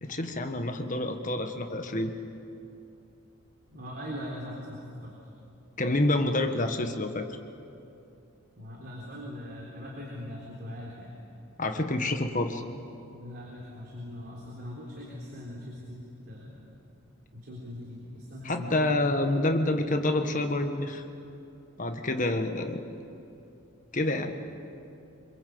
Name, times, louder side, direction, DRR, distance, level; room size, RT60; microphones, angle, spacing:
voice 1, 0.0-2.1 5.8-7.3 11.6-12.6 18.4-21.0 21.8-22.8 23.9-24.3, left 2 dB, 35° left, 6 dB, 1.5 m, -28 dB
voice 2, 3.7-5.1 8.6-11.1 13.1-16.6 17.3-18.8, left 1 dB, 50° right, -3 dB, 3.9 m, -41 dB
26.0 x 22.0 x 7.9 m, 2.7 s
head